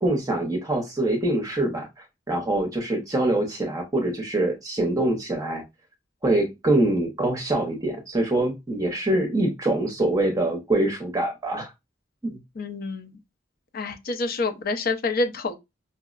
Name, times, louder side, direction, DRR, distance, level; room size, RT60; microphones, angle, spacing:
voice 1, 0.0-5.6 6.2-11.7 12.2-12.4, right 1 dB, 20° right, 0.6 m, -24 dB
voice 2, 12.6-13.2 13.7-15.6, left 3 dB, 50° left, 0.5 m, -27 dB
5.4 x 2.0 x 2.3 m
head